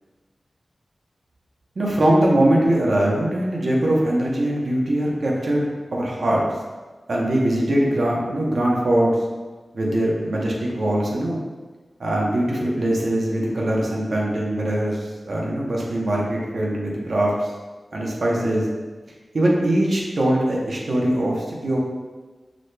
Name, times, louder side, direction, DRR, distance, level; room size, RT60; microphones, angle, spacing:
voice 1, 1.8-5.7 5.9-6.4 7.1-9.1 9.7-11.4 12.0-17.5 17.9-18.7 19.3-21.8, right 1 dB, 75° right, -3 dB, 0.8 m, -21 dB
6.2 x 3.3 x 2.2 m, 1.3 s
wide cardioid pair, 60°, 0 cm